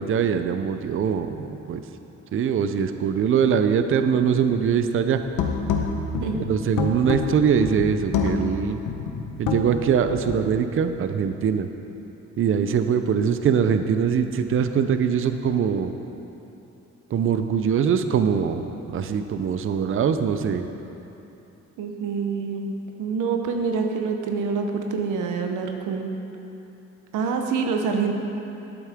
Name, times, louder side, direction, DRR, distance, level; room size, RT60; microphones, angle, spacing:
voice 1, 0.0-1.8 2.3-5.2 6.5-8.8 9.4-11.7 12.4-15.9 17.1-20.6, right 7 dB, 45° right, 9 dB, 0.5 m, -22 dB
sound 1, 5.2-10.5, left 5 dB, 90° left, 0.9 m, -27 dB
voice 2, 21.8-22.7 23.0-26.1 27.1-28.1, right 5 dB, 85° right, 4 dB, 0.9 m, -26 dB
12.0 x 8.3 x 3.6 m, 2.9 s
cardioid pair, 90°, 30 cm